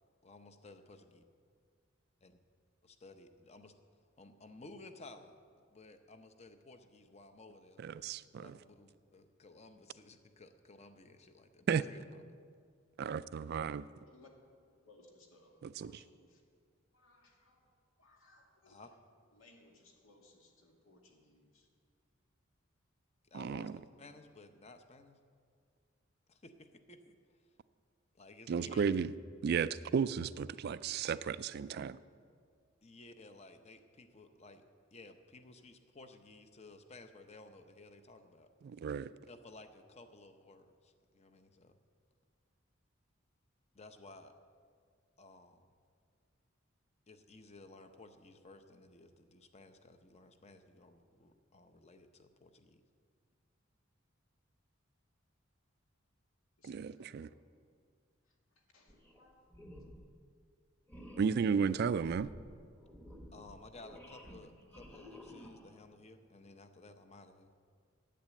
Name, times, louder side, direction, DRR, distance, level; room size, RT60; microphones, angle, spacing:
voice 1, 0.2-1.2 2.2-2.4 2.8-3.7 4.2-5.4 5.7-7.8 8.4-12.2 18.7-18.9 23.2-23.7 24.0-25.2 26.3-27.4 28.1-28.9 29.5-29.7 32.8-34.6 34.9-38.5 39.3-41.8 43.7-44.3 45.2-45.7 47.1-52.8 63.3-67.5, left 2 dB, 30° left, 8 dB, 0.7 m, -56 dB
voice 2, 7.8-8.6 11.7-11.8 13.0-13.9 15.6-15.9 23.3-23.8 28.5-29.1 29.4-32.0 38.6-39.1 56.6-57.3 61.2-62.3, right 6 dB, 50° right, 16 dB, 0.3 m, -34 dB
voice 3, 14.0-14.3 14.8-16.4 16.9-17.6 18.0-18.9 19.3-21.7 56.6-57.3 58.7-59.4, left 2 dB, 85° left, 0 dB, 2.1 m, -64 dB
sound 1, 58.9-59.2 59.5-60.1 60.9-65.9, equal, 10° left, 1.0 m, -53 dB
10.5 x 9.1 x 7.6 m, 2.1 s
head